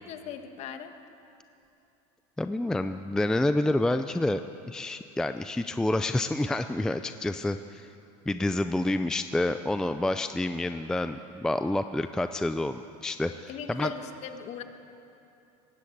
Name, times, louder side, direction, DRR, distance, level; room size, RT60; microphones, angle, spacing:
voice 1, 0.1-0.9 13.5-14.6, left 8 dB, 45° left, 7 dB, 1.5 m, -38 dB
voice 2, 2.4-4.4 4.7-7.9 8.3-13.9, left 1 dB, 5° left, 9 dB, 0.4 m, -28 dB
20.5 x 16.0 x 8.6 m, 2.7 s
cardioid pair, 145°, 16 cm